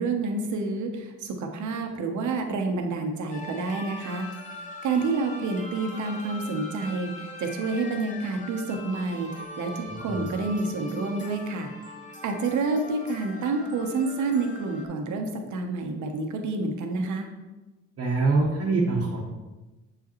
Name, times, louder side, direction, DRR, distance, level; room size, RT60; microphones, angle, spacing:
voice 1, 0.0-4.3 4.8-11.7 12.2-17.3, right 3 dB, 75° right, 4 dB, 1.0 m, -28 dB
sound 1, 3.3-14.9, left 2 dB, 25° left, 1.0 m, -41 dB
voice 2, 9.9-10.2 18.0-19.2, right 3 dB, 50° right, -3 dB, 1.1 m, -24 dB
6.8 x 4.9 x 3.0 m, 1.1 s
cardioid pair, 90°, 30 cm